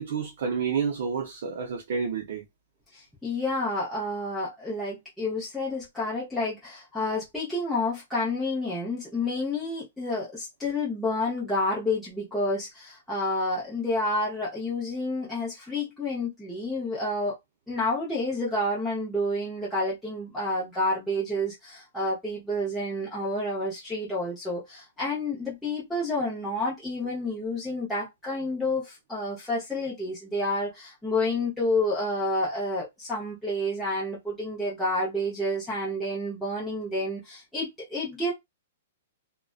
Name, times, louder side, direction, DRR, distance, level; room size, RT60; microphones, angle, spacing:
voice 1, 0.0-2.4, right 6 dB, 55° right, 0.6 m, -29 dB
voice 2, 2.9-17.4 17.7-38.3, left 1 dB, ahead, 0.7 m, -29 dB
2.5 x 2.1 x 2.3 m
hypercardioid pair, 170°, 0 cm